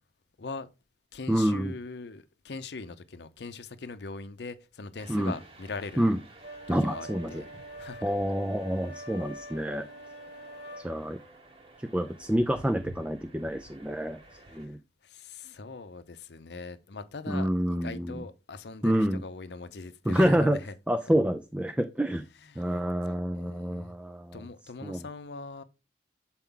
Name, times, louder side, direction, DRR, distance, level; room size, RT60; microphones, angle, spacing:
voice 1, 0.4-0.7 1.1-6.1 6.8-7.5 7.8-8.0 14.3-14.8 15.0-20.7 22.4-22.7 23.3-23.9 24.3-25.6, left 4 dB, 70° left, 0.6 m, -41 dB
voice 2, 1.3-1.7 5.1-5.3 6.0-6.2 6.7-7.4 8.0-9.9 10.8-11.2 11.9-14.2 14.5-14.8 17.3-18.2 18.8-19.2 20.1-20.6 20.9-22.2 22.6-24.4 24.8-25.0, equal, 5° right, 0.3 m, -27 dB
sound 1, 5.0-14.7, right 2 dB, 30° right, 1.0 m, -52 dB
sound 2, 6.4-10.9, right 1 dB, 85° right, 2.9 m, -45 dB
7.1 x 4.4 x 3.7 m
head